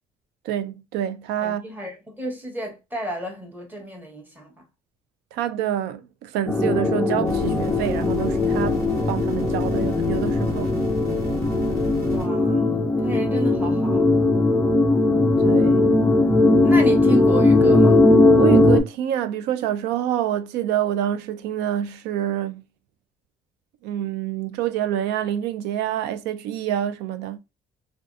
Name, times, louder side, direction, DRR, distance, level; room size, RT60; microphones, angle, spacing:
voice 1, 0.4-1.6 5.3-10.7 15.4-15.9 18.3-22.6 23.8-27.4, right 11 dB, 85° right, 0.4 m, -27 dB
voice 2, 1.4-4.5 12.1-14.2 16.6-18.1, right 1 dB, 10° right, 1.0 m, -31 dB
sound 1, 6.5-18.8, left 2 dB, 5° left, 0.3 m, -19 dB
sound 2, 7.2-12.3, equal, 70° right, 1.5 m, -33 dB
2.6 x 2.3 x 2.4 m
cardioid pair, 110°, 17 cm